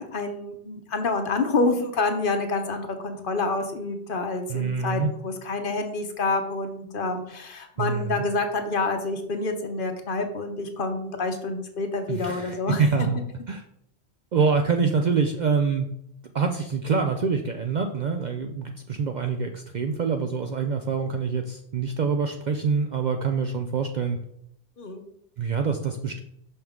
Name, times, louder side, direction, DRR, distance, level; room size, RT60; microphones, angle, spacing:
voice 1, 0.0-12.8 24.8-25.0, left 3 dB, 55° left, 6 dB, 0.9 m, -28 dB
voice 2, 4.5-5.1 7.8-8.2 12.1-13.2 13.5-13.6 14.3-15.9 16.3-24.2 25.4-26.2, right 5 dB, 55° right, 5 dB, 0.5 m, -25 dB
5.9 x 5.6 x 3.6 m, 0.72 s
omnidirectional pair, 1.1 m